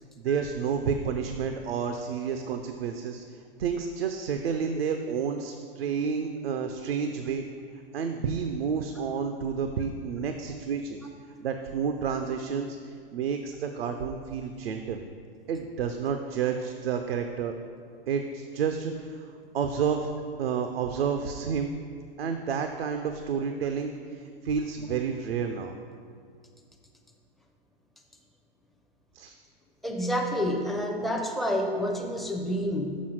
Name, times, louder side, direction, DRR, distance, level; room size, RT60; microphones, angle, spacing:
voice 1, 0.2-3.2 3.6-7.5 7.9-11.0 11.4-15.0 15.5-17.5 18.1-19.3 19.5-20.1 20.4-21.7 22.2-25.8 29.1-29.4, right 6 dB, 85° right, 6 dB, 0.6 m, -30 dB
voice 2, 29.8-33.0, equal, ahead, 1 dB, 0.4 m, -29 dB
6.2 x 5.5 x 6.1 m, 2.2 s
hypercardioid pair, 125°, 30 cm